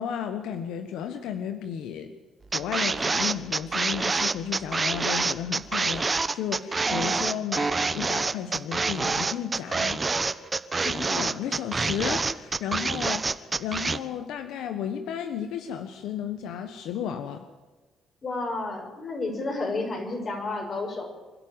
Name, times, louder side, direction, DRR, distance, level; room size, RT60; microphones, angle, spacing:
voice 1, 0.0-2.1 2.5-10.3 10.8-17.4, left 8 dB, 85° left, 8 dB, 1.3 m, -33 dB
sound 1, 2.5-14.0, right 4 dB, 30° right, 1.1 m, -26 dB
voice 2, 18.2-21.1, left 2 dB, 45° left, 3 dB, 6.5 m, -31 dB
26.0 x 12.0 x 8.9 m, 1.3 s
cardioid pair, 90°, 0 cm